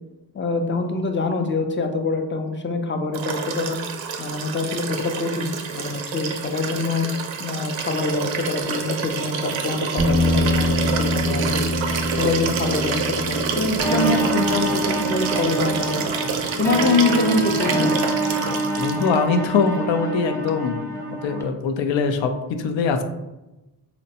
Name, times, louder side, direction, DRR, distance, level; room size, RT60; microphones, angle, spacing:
voice 1, 0.3-3.8 4.2-7.1 7.4-11.7 12.2-16.0 16.6-17.9, left 3 dB, 25° left, 6 dB, 0.5 m, -25 dB
Liquid, 3.1-19.2 20.5-20.6, right 6 dB, 85° right, 0.5 m, -28 dB
sound 1, 10.0-18.3, left 1 dB, 20° right, 0.5 m, -27 dB
sound 2, 13.8-21.4, right 2 dB, 5° left, 0.9 m, -25 dB
voice 2, 18.8-23.0, left 5 dB, 70° left, 6 dB, 0.6 m, -22 dB
4.0 x 2.1 x 2.8 m, 1.0 s
cardioid pair, 50°, 46 cm